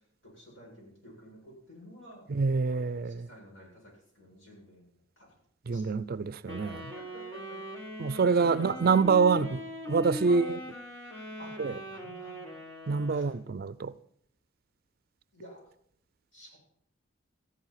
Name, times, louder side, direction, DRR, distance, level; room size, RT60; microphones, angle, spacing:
voice 1, 0.2-2.3 2.7-4.9 5.2-5.3 5.7-5.9 7.0-7.6 8.3-8.9 10.3-10.4 11.4-12.6 13.1-13.3 15.3-15.6 16.3-16.6, equal, 75° left, 7.3 m, -50 dB
voice 2, 2.3-3.3 5.7-6.9 8.0-10.6 11.6-11.8 12.9-13.9, right 5 dB, 50° right, 0.4 m, -26 dB
Wind instrument woodwind instrument, 6.5-13.4, equal, 20° left, 2.7 m, -40 dB
14.0 x 11.0 x 5.7 m
head